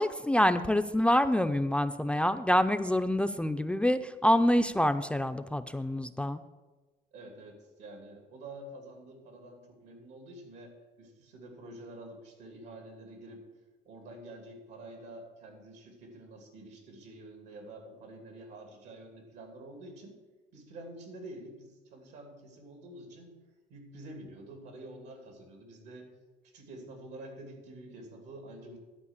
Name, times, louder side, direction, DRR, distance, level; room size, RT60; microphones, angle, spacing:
voice 1, 0.0-6.4, left 1 dB, 5° left, 9 dB, 0.4 m, -26 dB
voice 2, 7.1-13.4 13.8-20.2 20.5-23.4 23.7-26.1 26.5-28.8, right 1 dB, 85° right, 3 dB, 2.7 m, -48 dB
11.5 x 4.6 x 8.1 m, 1.2 s
cardioid pair, 110°, 17 cm